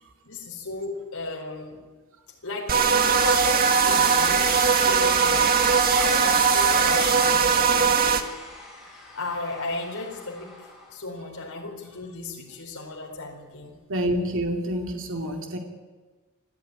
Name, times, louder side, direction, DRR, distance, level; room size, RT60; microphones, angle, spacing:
voice 1, 0.2-1.8 2.4-8.2 9.1-10.6 10.9-13.8, left 3 dB, 80° left, 0 dB, 4.5 m, -35 dB
sound 1, 2.7-8.2, right 6 dB, 45° right, 1.7 m, -20 dB
sound 2, 2.8-10.9, left 1 dB, ahead, 7.7 m, -35 dB
voice 2, 13.9-15.6, equal, 65° right, 2 dB, 2.7 m, -27 dB
27.5 x 13.5 x 9.8 m, 1.3 s
head